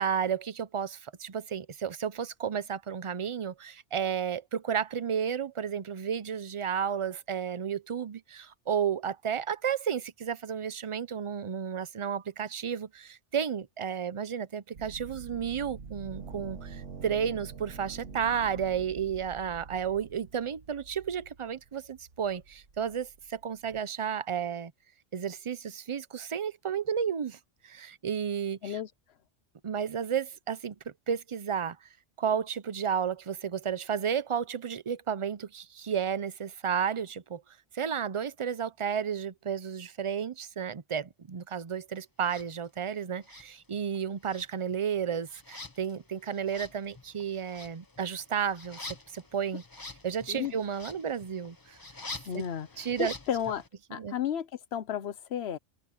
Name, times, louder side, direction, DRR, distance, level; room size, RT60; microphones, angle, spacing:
voice 1, 0.0-24.7 25.1-27.4 27.6-28.8 29.6-30.8 31.1-31.8 32.2-37.4 37.7-49.6 50.0-51.8 52.3-52.4 52.8-53.1 54.0-54.2, right 7 dB, 40° right, 0.5 m, -32 dB
sound 1, 14.7-23.8, right 5 dB, 90° right, 1.8 m, -46 dB
sound 2, 42.2-42.5 43.2-44.0 44.2-53.7, left 3 dB, 20° left, 0.9 m, -47 dB
voice 2, 52.3-53.6 53.9-55.6, left 9 dB, 65° left, 1.0 m, -33 dB
omnidirectional pair, 1.2 m